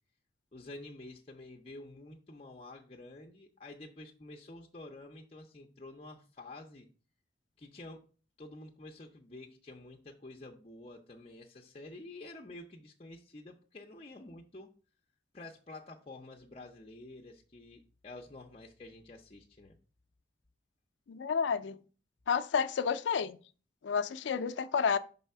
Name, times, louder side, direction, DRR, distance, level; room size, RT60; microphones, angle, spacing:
voice 1, 0.5-6.9 7.6-8.1 8.4-14.7 15.3-19.8, left 2 dB, 30° left, 0.6 m, -49 dB
voice 2, 21.1-21.8 22.3-23.4 23.8-25.0, left 6 dB, 80° left, 0.4 m, -30 dB
5.5 x 3.3 x 5.5 m
head